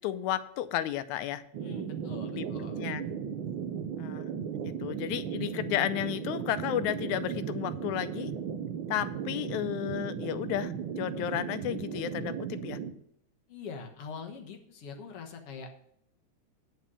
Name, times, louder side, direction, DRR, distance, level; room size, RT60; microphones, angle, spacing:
voice 1, 0.0-1.4 2.3-2.5 2.8-3.0 4.0-4.4 4.6-8.3 8.9-12.8, left 12 dB, 90° left, 12 dB, 2.1 m, -33 dB
sound 1, 1.5-12.9, right 7 dB, 85° right, 1.1 m, -36 dB
voice 2, 1.6-2.9 13.5-15.8, left 5 dB, 60° left, 3 dB, 2.1 m, -43 dB
9.7 x 6.1 x 6.8 m, 0.72 s
omnidirectional pair, 3.3 m